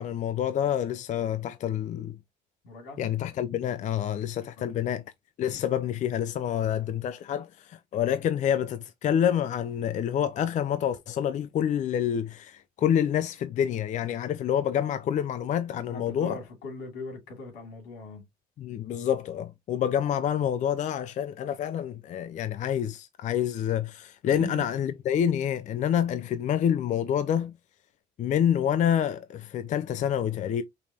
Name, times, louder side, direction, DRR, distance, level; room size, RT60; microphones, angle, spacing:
voice 1, 0.0-2.2 3.0-5.0 5.4-16.4 18.6-27.5 28.2-30.6, left 9 dB, 45° left, 0.4 m, -27 dB
voice 2, 2.6-3.0 4.7-4.8 15.9-18.2 24.3-24.6, left 1 dB, 80° left, 2.8 m, -40 dB
5.2 x 3.3 x 2.7 m
cardioid pair, 110°, 17 cm